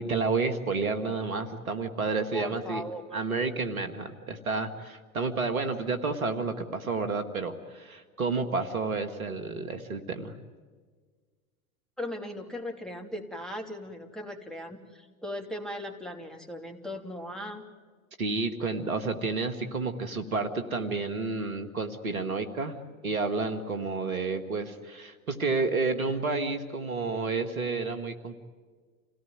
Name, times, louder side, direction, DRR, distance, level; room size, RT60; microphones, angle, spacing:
voice 1, 0.0-2.8 3.1-10.3 18.2-22.8 23.0-28.3, right 4 dB, 80° right, 8 dB, 2.0 m, -30 dB
voice 2, 2.3-3.2 12.0-17.6, left 1 dB, ahead, 2 dB, 3.2 m, -38 dB
28.0 x 17.5 x 9.6 m, 1.5 s
figure-of-eight pair, 80°, 41 cm